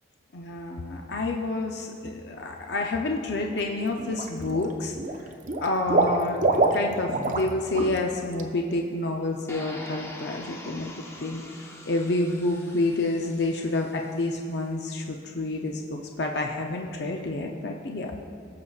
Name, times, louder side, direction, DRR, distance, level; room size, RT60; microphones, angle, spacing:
voice 1, 0.3-4.9 5.6-18.2, left 2 dB, 65° left, 2 dB, 0.5 m, -29 dB
Water / Liquid, 3.3-3.6 4.0-4.7 4.9-7.5 7.7-8.0 8.3-8.4, right 2 dB, 40° right, 0.6 m, -25 dB
sound 1, 9.5-14.5, left 1 dB, 15° left, 0.6 m, -44 dB
19.0 x 6.7 x 2.4 m, 2.4 s
head